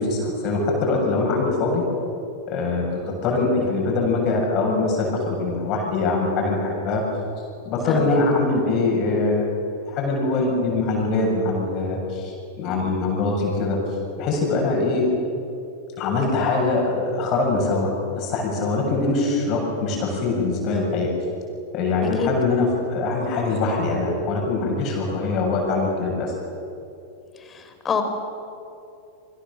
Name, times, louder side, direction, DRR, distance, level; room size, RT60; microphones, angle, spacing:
voice 1, 0.0-1.8 2.5-7.0 7.6-9.5 9.8-13.8 14.2-15.0 16.0-17.9 18.2-21.1 21.7-26.3, left 3 dB, 40° left, 0 dB, 7.6 m, -23 dB
voice 2, 7.9-8.2 12.6-12.8 22.2-22.3 27.5-28.0, left 6 dB, 20° left, 7 dB, 4.3 m, -27 dB
29.0 x 24.5 x 7.3 m, 2.7 s
figure-of-eight pair, 90°, 0 cm